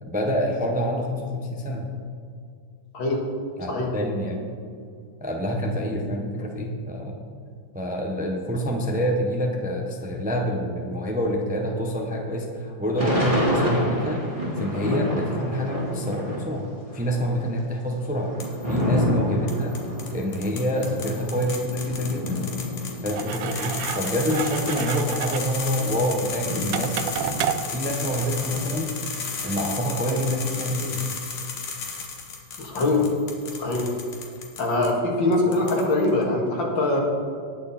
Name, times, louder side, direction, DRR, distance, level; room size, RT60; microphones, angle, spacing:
voice 1, 0.0-1.9 3.6-4.4 5.2-7.2 7.7-16.7 16.9-18.3 18.7-19.7 20.1-22.4 23.0-27.4 27.7-28.9 29.4-31.0, equal, 5° right, 0 dB, 0.8 m, -27 dB
voice 2, 2.9-3.2 3.7-3.9 32.6-33.1 33.6-33.9 34.6-37.0, left 2 dB, 70° left, -1 dB, 2.6 m, -23 dB
Thunder / Rain, 13.0-16.6 16.9-24.0 24.6-24.7 24.9-28.0 28.4-30.1, equal, 25° right, 2.5 m, -29 dB
sound 1, 18.4-18.8 19.5-34.9 35.3-36.1, left 5 dB, 85° left, 2.4 m, -35 dB
sound 2, 23.2-28.7, right 9 dB, 75° right, 1.3 m, -32 dB
19.0 x 6.6 x 4.3 m, 2.3 s
omnidirectional pair, 2.2 m